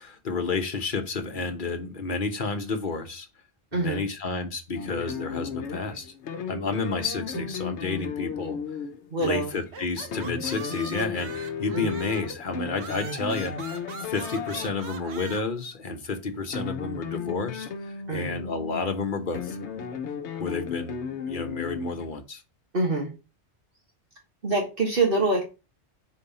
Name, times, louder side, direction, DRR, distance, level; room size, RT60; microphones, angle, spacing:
voice 1, 0.0-3.3 3.7-6.1 6.5-8.6 9.2-13.5 14.0-19.6 20.4-22.4, left 4 dB, 50° left, 1.2 m, -31 dB
voice 2, 3.7-4.0 7.3-7.4 9.1-9.5 11.7-11.9 18.1-18.4 22.7-23.1 24.4-25.4, right 3 dB, 55° right, 1.8 m, -25 dB
sound 1, 4.7-15.4 16.3-22.2, left 6 dB, 80° left, 1.1 m, -35 dB
sound 2, 9.5-12.4 12.8-15.4, right 4 dB, 70° right, 1.2 m, -41 dB
5.3 x 4.7 x 4.1 m
omnidirectional pair, 1.1 m